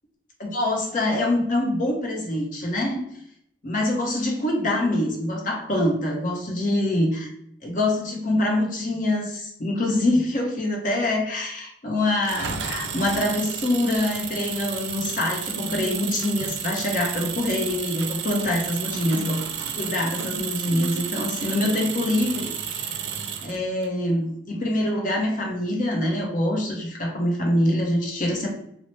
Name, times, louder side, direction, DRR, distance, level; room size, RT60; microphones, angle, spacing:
voice 1, 0.4-3.0 3.6-7.3 7.6-19.4 19.8-22.9 23.4-28.5, left 1 dB, 50° left, 0 dB, 0.7 m, -25 dB
Engine, 12.2-23.9, right 7 dB, 85° right, 0.4 m, -32 dB
2.9 x 2.0 x 3.0 m, 0.72 s
head